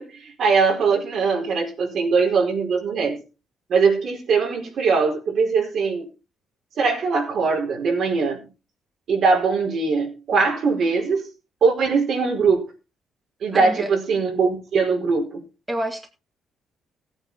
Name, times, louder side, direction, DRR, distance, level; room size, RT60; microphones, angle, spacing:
voice 1, 0.0-3.2 3.7-6.1 6.8-8.5 9.1-11.3 11.6-12.7 13.4-15.4, right 4 dB, 65° right, 4.8 m, -21 dB
voice 2, 13.5-13.9 15.7-16.1, right 1 dB, 15° right, 2.2 m, -28 dB
16.0 x 9.0 x 4.2 m
cardioid pair, 90°, 0 cm